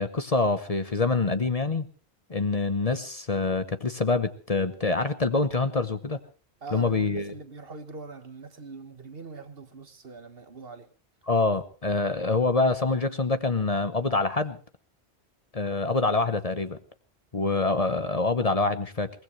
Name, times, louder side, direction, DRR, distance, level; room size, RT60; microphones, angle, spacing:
voice 1, 0.0-1.9 2.3-6.2 6.7-7.3 11.3-14.6 15.5-16.8 17.3-19.1, left 3 dB, 35° left, 10 dB, 1.0 m, -25 dB
voice 2, 6.6-10.9, right 4 dB, 60° right, 9 dB, 1.7 m, -42 dB
23.0 x 19.5 x 3.2 m, 0.39 s
omnidirectional pair, 1.1 m